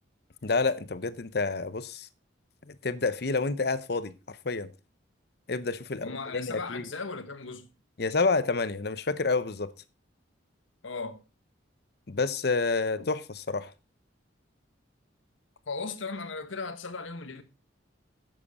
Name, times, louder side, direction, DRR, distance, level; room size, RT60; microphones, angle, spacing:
voice 1, 0.4-2.1 2.7-4.7 5.5-6.8 8.0-9.7 12.1-13.7, left 3 dB, 55° left, 0.7 m, -29 dB
voice 2, 6.0-7.7 10.8-11.2 15.7-17.4, left 4 dB, 85° left, 1.3 m, -37 dB
11.5 x 7.8 x 4.1 m
head